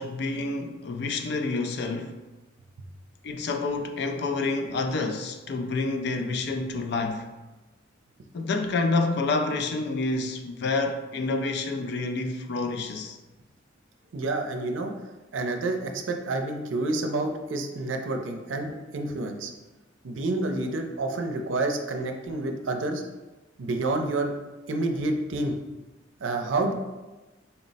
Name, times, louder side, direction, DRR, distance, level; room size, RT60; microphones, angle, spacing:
voice 1, 0.0-2.2 3.2-7.3 8.3-13.2, left 3 dB, 60° left, 0.4 m, -28 dB
voice 2, 14.1-14.9 15.3-19.5 20.0-23.0 23.6-24.3 24.7-25.6 26.2-26.7, right 2 dB, 85° right, 0.5 m, -28 dB
4.2 x 2.0 x 4.0 m
head